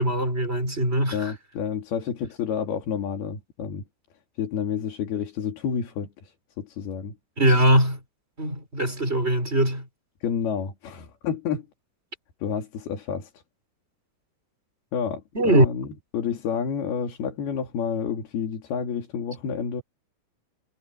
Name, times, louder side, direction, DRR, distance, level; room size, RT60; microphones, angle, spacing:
voice 1, 0.0-1.3 7.4-8.0 8.4-9.8 15.3-15.6, right 1 dB, 15° right, 6.7 m, -21 dB
voice 2, 1.1-3.8 4.4-6.3 6.6-7.1 10.2-11.7 12.4-13.3 14.9-15.9 16.1-19.8, left 7 dB, 70° left, 4.7 m, -29 dB
omnidirectional pair, 4.6 m